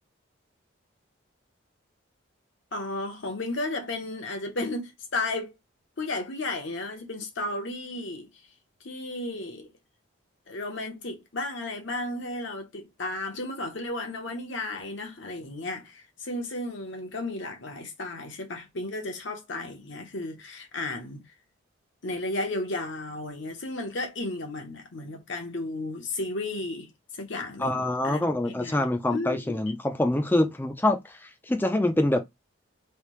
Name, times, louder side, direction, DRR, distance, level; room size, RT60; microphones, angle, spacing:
voice 1, 2.7-5.5 6.0-8.3 8.8-9.7 10.5-21.2 22.0-29.6, left 2 dB, 65° left, 0.9 m, -34 dB
voice 2, 27.6-32.2, left 1 dB, 10° left, 0.4 m, -25 dB
3.3 x 2.7 x 3.1 m
head